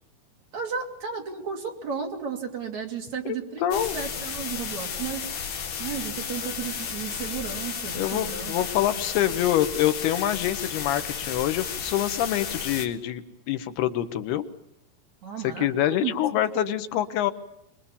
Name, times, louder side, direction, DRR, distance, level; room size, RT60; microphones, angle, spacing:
voice 1, 0.5-5.5 5.8-8.5 15.2-16.8, right 6 dB, 50° right, 1 dB, 3.7 m, -34 dB
voice 2, 3.6-4.0 8.0-14.4 15.4-17.3, left 12 dB, 80° left, 10 dB, 3.0 m, -26 dB
sound 1, 3.7-12.9, left 7 dB, 60° left, 3.5 m, -33 dB
24.5 x 22.0 x 7.1 m, 0.83 s
omnidirectional pair, 4.7 m